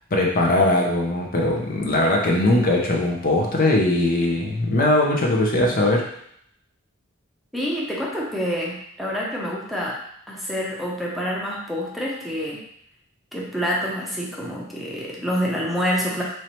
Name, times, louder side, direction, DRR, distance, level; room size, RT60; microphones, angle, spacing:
voice 1, 0.1-6.1, left 1 dB, 40° left, -1 dB, 0.6 m, -20 dB
voice 2, 7.5-10.0 10.3-12.6 13.3-16.2, equal, ahead, -4 dB, 0.7 m, -27 dB
4.4 x 3.2 x 3.0 m, 0.71 s
head